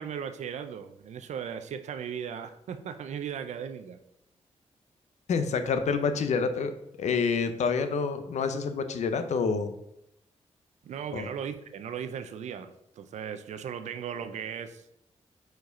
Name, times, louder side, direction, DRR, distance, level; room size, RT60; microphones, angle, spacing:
voice 1, 0.0-4.0 10.8-14.8, right 8 dB, 85° right, 10 dB, 0.5 m, -37 dB
voice 2, 5.3-9.7 11.1-11.3, left 5 dB, 80° left, 9 dB, 0.7 m, -28 dB
4.8 x 4.5 x 5.1 m, 0.79 s
cardioid pair, 80°, 12 cm